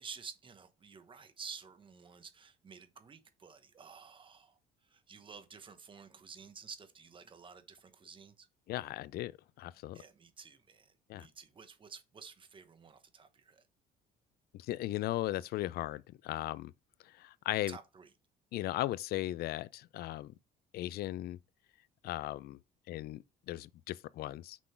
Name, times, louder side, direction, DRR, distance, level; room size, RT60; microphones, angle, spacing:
voice 1, 0.0-8.5 9.9-13.7 17.7-18.1, right 5 dB, 30° right, 1.0 m, -51 dB
voice 2, 8.7-9.3 9.6-10.0 11.1-11.3 14.5-16.7 17.1-17.8 18.5-20.3 20.7-21.4 22.0-22.6 22.9-24.6, left 15 dB, 65° left, 0.4 m, -37 dB
6.1 x 3.8 x 4.5 m
cardioid pair, 110°, 17 cm